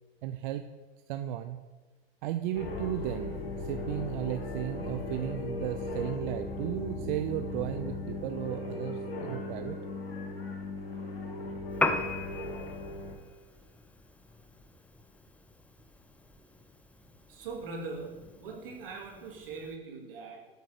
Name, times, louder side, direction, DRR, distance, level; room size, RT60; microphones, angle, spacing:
voice 1, 0.2-0.6 1.1-1.6 2.2-9.8, right 12 dB, 55° right, 8 dB, 0.5 m, -35 dB
sound 1, 2.5-13.2, left 2 dB, 85° left, 1.4 m, -37 dB
Piano, 11.7-19.8, left 2 dB, 5° left, 0.4 m, -39 dB
voice 2, 17.3-20.4, right 4 dB, 70° right, -1 dB, 2.3 m, -41 dB
8.9 x 8.2 x 3.0 m, 1.3 s
hypercardioid pair, 95°, 30 cm